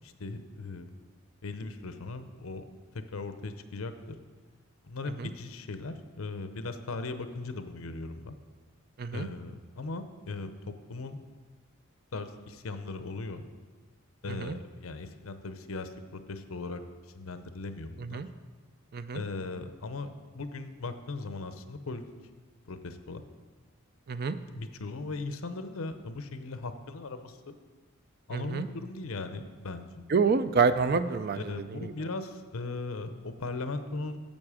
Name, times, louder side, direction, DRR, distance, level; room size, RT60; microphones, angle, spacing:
voice 1, 0.0-0.9 1.4-2.6 2.9-3.9 4.8-8.4 9.1-11.2 12.1-13.4 14.2-16.8 17.1-18.2 19.1-22.0 22.6-23.2 24.5-27.5 28.3-30.1 31.3-34.2, left 3 dB, 75° left, 9 dB, 0.7 m, -38 dB
voice 2, 28.3-28.7 30.1-31.9, right 5 dB, 45° right, 12 dB, 0.4 m, -28 dB
10.5 x 7.4 x 4.9 m, 1.4 s
head